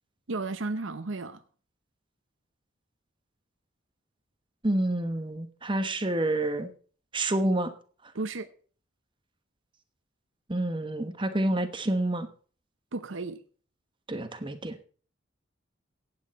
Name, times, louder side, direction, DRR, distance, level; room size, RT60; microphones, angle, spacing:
voice 1, 0.3-1.4 8.1-8.5 12.9-13.4, right 3 dB, 70° right, 0.9 m, -33 dB
voice 2, 4.6-6.7 7.1-7.7 10.5-12.3 14.1-14.8, right 1 dB, 25° right, 1.2 m, -28 dB
15.5 x 9.0 x 4.2 m
head